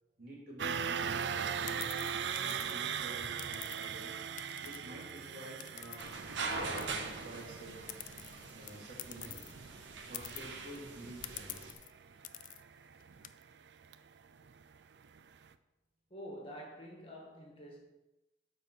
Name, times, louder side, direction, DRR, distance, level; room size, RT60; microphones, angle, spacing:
voice 1, 0.2-1.8 2.4-4.1 4.6-6.1 6.7-7.8 8.5-9.4 10.1-11.7, right 1 dB, 55° right, -3 dB, 3.1 m, -50 dB
sound 1, 0.6-14.6 15.0-15.2 15.5-15.6, right 7 dB, 70° right, 0.4 m, -40 dB
sound 2, 1.1-4.0 4.4-6.5 6.8-9.5 9.8-9.9 10.1-10.8 11.2-11.9 12.2-12.6 13.0-13.3, left 14 dB, 45° left, 0.4 m, -48 dB
sound 3, 6.0-11.7, right 3 dB, 90° right, 1.1 m, -42 dB
voice 2, 16.1-17.8, equal, 30° left, -1 dB, 1.7 m, -47 dB
9.3 x 4.2 x 6.5 m, 1.0 s
head